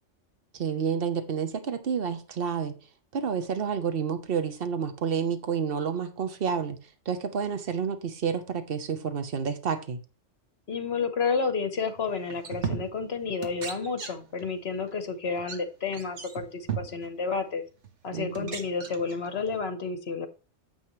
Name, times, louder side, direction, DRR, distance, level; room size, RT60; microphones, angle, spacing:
voice 1, 0.5-2.8 3.1-10.0 18.1-18.6, right 6 dB, 55° right, 1.1 m, -30 dB
voice 2, 10.7-17.6 18.0-20.3, left 5 dB, 60° left, 1.4 m, -30 dB
sound 1, 11.9-12.0 12.3-13.2 13.4-14.5 14.8-14.9 15.4-15.6 15.9-17.1 17.8-17.9 18.3-19.6, right 7 dB, 70° right, 1.5 m, -36 dB
9.2 x 7.4 x 3.1 m
omnidirectional pair, 1.2 m